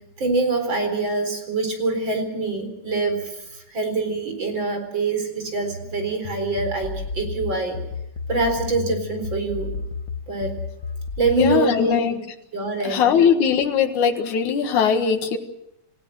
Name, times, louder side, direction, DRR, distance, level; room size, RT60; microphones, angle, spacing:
voice 1, 0.2-3.2 3.5-7.8 8.3-9.7 10.3-10.6 11.2-12.0 12.5-13.1, right 3 dB, 35° right, 6 dB, 4.7 m, -24 dB
sound 1, 6.2-11.6, left 5 dB, 50° left, 1.2 m, -32 dB
voice 2, 11.4-12.1 12.8-15.4, left 7 dB, 75° left, 6 dB, 3.1 m, -20 dB
28.0 x 16.0 x 7.8 m, 0.84 s
omnidirectional pair, 3.5 m